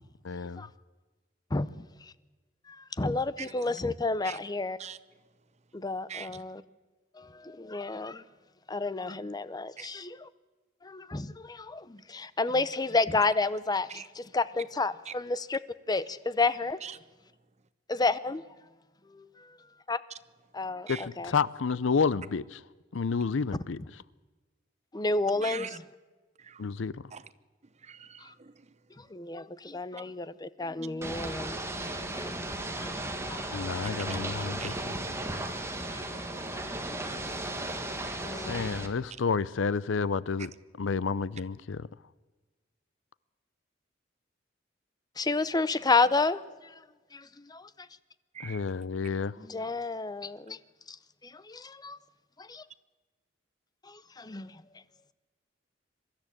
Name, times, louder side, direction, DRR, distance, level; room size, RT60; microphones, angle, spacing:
voice 1, 0.3-0.6 20.9-21.0 21.3-22.4 22.9-23.8 26.6-27.0 33.5-34.7 38.4-40.5 40.8-41.8 48.4-49.3, left 5 dB, 75° left, 0.6 m, -30 dB
voice 2, 1.5-2.1 2.7-4.8 5.7-6.6 7.1-8.2 8.7-10.2 10.8-13.9 14.2-15.6 15.9-16.8 17.9-18.4 19.1-19.3 19.9-20.0 20.5-21.3 24.9-25.7 28.2-28.3 29.0-32.9 33.3-33.8 35.9-37.2 37.5-37.7 38.2-38.8 45.2-46.7 47.1-47.9 49.4-50.6 50.9-51.0 51.2-52.0 52.4-52.6 53.8-54.6, left 3 dB, 20° left, 0.7 m, -31 dB
voice 3, 3.4-3.7 4.2-4.4 4.8-5.0 6.1-6.4 9.8-9.9 13.9-14.1 15.0-15.1 16.8-17.0 20.1-20.2 20.9-21.1 25.4-25.8 26.4-26.7 27.1-27.3 27.6-28.8 34.1-34.2 34.6-34.8 40.4-40.5 48.3-48.7, right 7 dB, 35° right, 0.8 m, -43 dB
Ocean / Boat Water vehicle, 31.0-38.9, right 1 dB, 15° right, 1.8 m, -35 dB
23.5 x 13.0 x 8.7 m
head